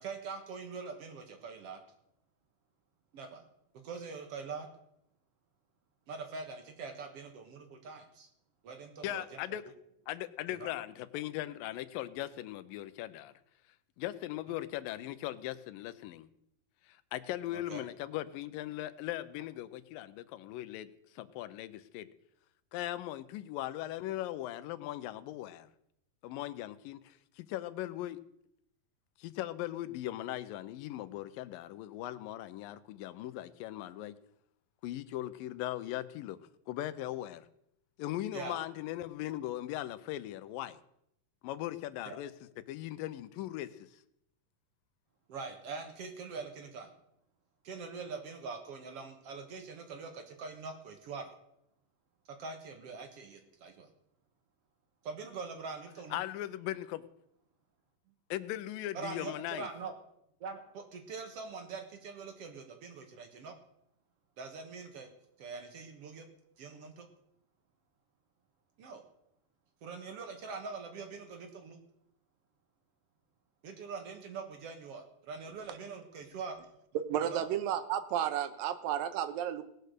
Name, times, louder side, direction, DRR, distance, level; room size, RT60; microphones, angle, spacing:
voice 1, 0.0-1.8 3.1-3.4 3.8-4.7 6.1-8.3 8.6-9.4 10.5-10.7 17.5-17.8 38.3-38.6 42.0-42.2 45.3-46.9 47.6-51.3 52.3-53.9 55.0-56.2 58.9-59.9 60.4-63.5 64.4-65.1 65.4-66.3 66.6-67.1 68.8-69.0 69.8-71.8 73.6-76.6 77.2-77.5, right 4 dB, 60° right, 6 dB, 1.8 m, -43 dB
voice 2, 9.0-9.6 10.1-13.3 14.0-16.3 16.9-20.9 21.1-22.1 22.7-25.7 26.2-28.2 29.2-34.2 34.8-36.4 36.7-37.5 38.0-40.8 41.4-42.3 42.7-43.7 56.1-57.0 58.3-59.7, left 14 dB, 85° left, 14 dB, 2.4 m, -39 dB
voice 3, 77.1-79.6, right 10 dB, 90° right, 11 dB, 2.7 m, -32 dB
18.5 x 6.5 x 6.7 m, 0.77 s
omnidirectional pair, 4.0 m